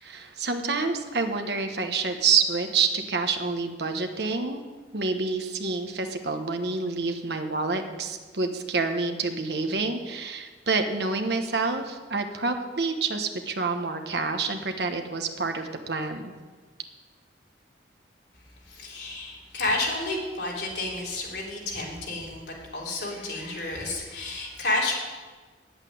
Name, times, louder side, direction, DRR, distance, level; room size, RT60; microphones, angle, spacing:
voice 1, 0.0-4.6 4.9-16.3, right 4 dB, 70° right, 6 dB, 1.1 m, -28 dB
voice 2, 18.6-24.9, left 2 dB, 70° left, -3 dB, 3.3 m, -31 dB
8.9 x 8.2 x 9.3 m, 1.4 s
head